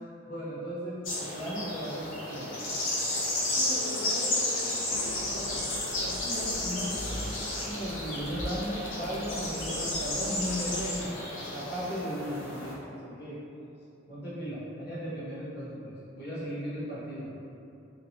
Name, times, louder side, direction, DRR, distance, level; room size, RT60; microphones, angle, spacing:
voice 1, 0.0-2.5 6.2-6.9 7.6-13.4 14.1-17.3, equal, 50° left, -9 dB, 0.9 m, -36 dB
sound 1, 1.0-12.7, left 2 dB, 75° left, 0.7 m, -32 dB
voice 2, 3.5-5.6 5.9-7.2, equal, 75° right, -7 dB, 0.9 m, -40 dB
sound 2, 4.9-11.0, equal, 20° left, 0.3 m, -42 dB
2.8 x 2.8 x 2.8 m, 2.7 s
head